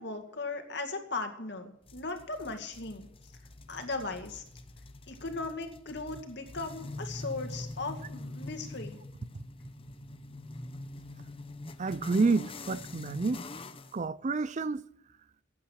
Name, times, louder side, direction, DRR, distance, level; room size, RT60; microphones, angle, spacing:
voice 1, 0.0-3.1 3.7-4.4 5.1-9.0, left 3 dB, 60° left, 2.2 m, -37 dB
sound 1, 1.9-14.0, left 2 dB, 30° left, 0.8 m, -44 dB
voice 2, 11.8-13.4 13.9-14.8, right 3 dB, 35° right, 0.4 m, -29 dB
17.5 x 8.7 x 6.4 m
head